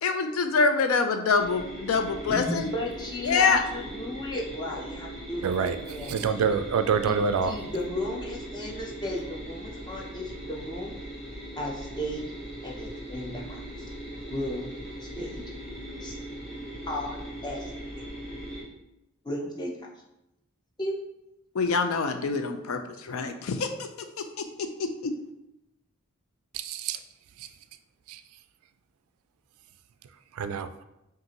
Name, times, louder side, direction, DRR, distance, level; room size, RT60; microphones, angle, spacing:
voice 1, 0.0-2.7 3.2-3.6 21.5-23.9 24.6-25.1, left 4 dB, 75° left, 7 dB, 0.4 m, -25 dB
sound 1, 1.4-18.6, right 1 dB, ahead, 1.2 m, -40 dB
voice 2, 2.3-6.6 7.0-10.9 11.6-12.2 12.6-13.6 14.3-14.7 15.0-15.4 16.0-16.2 16.9-17.1 17.4-17.7 18.0-18.1 19.2-19.7 20.8-20.9, left 1 dB, 20° left, -2 dB, 0.6 m, -34 dB
voice 3, 5.4-5.8 6.1-7.5 26.5-27.0 30.4-30.8, right 6 dB, 85° right, 9 dB, 0.3 m, -26 dB
5.3 x 2.5 x 2.9 m, 0.89 s
head